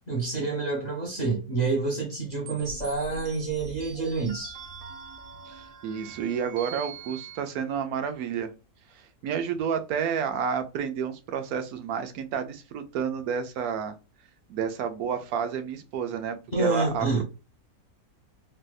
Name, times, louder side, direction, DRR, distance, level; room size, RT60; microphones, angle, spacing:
voice 1, 0.1-4.5 16.5-17.2, right 3 dB, 35° left, 0.8 m, -28 dB
sound 1, 2.5-7.4, right 5 dB, 60° right, 0.6 m, -43 dB
voice 2, 5.5-8.5 8.9-14.0 14.5-17.2, right 7 dB, 85° right, 1.1 m, -30 dB
3.3 x 2.7 x 2.3 m
omnidirectional pair, 1.6 m